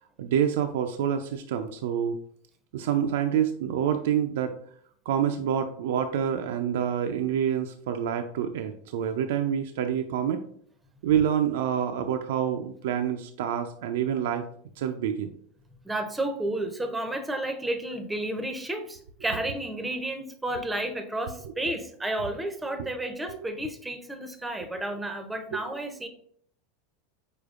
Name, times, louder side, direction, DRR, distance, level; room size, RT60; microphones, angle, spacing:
voice 1, 0.2-2.2 2.7-4.5 5.1-10.4 11.0-14.5 14.8-15.3 22.8-22.9 23.3-23.4 25.5-25.6, right 9 dB, 80° right, 7 dB, 0.4 m, -27 dB
voice 2, 15.8-26.1, right 1 dB, 5° right, 7 dB, 0.6 m, -32 dB
5.0 x 4.3 x 2.4 m, 0.63 s
supercardioid pair, 135°, 0 cm